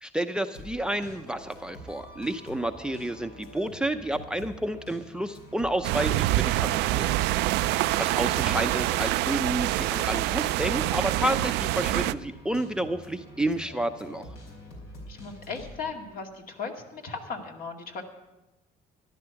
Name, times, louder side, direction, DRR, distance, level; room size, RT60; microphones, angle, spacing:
voice 1, 0.0-7.3 8.0-14.3, right 1 dB, 5° right, 9 dB, 0.6 m, -30 dB
sound 1, 0.5-15.9, left 1 dB, 85° left, 4.3 m, -46 dB
sound 2, 5.8-12.1, right 16 dB, 90° right, 0.4 m, -26 dB
voice 2, 15.1-18.0, left 4 dB, 60° left, 2 dB, 2.1 m, -37 dB
13.5 x 11.0 x 5.8 m, 1.0 s
cardioid pair, 110°, 17 cm